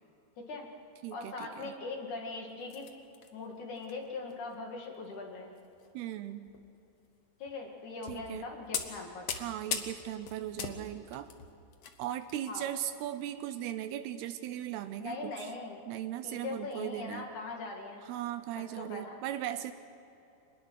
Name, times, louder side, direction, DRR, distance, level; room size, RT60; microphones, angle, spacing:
voice 1, 0.4-0.7 1.1-2.9 3.3-5.5 7.4-9.3 12.5-12.6 15.0-15.8 16.2-18.0 18.6-19.2, left 3 dB, 50° left, 1 dB, 3.1 m, -41 dB
voice 2, 1.0-1.7 5.9-6.5 8.0-8.5 9.3-11.3 12.0-15.5 15.9-17.3 18.0-19.7, right 12 dB, 80° right, 11 dB, 2.6 m, -38 dB
sound 1, 2.6-3.3 3.8-3.9 4.3-4.5 5.6-5.9 6.5-6.7 7.5-7.6 8.1-8.3 8.7-12.4 12.7-12.9 13.5-13.6, left 7 dB, 75° left, 1.5 m, -39 dB
25.0 x 20.5 x 6.4 m, 2.9 s
omnidirectional pair, 4.9 m